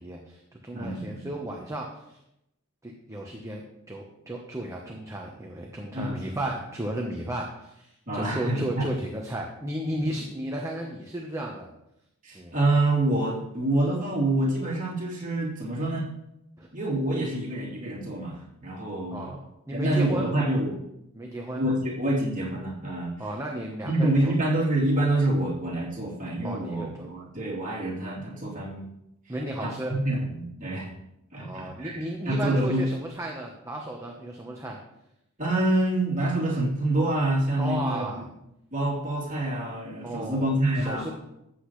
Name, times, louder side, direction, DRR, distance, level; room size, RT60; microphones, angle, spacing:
voice 1, 0.0-2.2 2.8-3.6 3.9-11.7 12.3-12.5 16.6-16.7 19.1-20.3 21.1-21.6 23.2-24.3 26.4-27.1 29.3-29.9 31.4-34.8 37.6-38.3 40.0-41.1, right 1 dB, 15° right, 0 dB, 1.0 m, -34 dB
voice 2, 0.7-1.3 5.9-6.4 8.1-8.9 9.9-10.1 12.2-16.1 16.7-19.3 19.7-20.8 21.5-23.1 23.8-28.9 29.3-29.4 29.6-31.0 31.3-32.8 35.4-38.2 38.7-41.1, right 1 dB, 35° right, -6 dB, 3.4 m, -27 dB
14.0 x 8.3 x 3.2 m, 0.84 s
head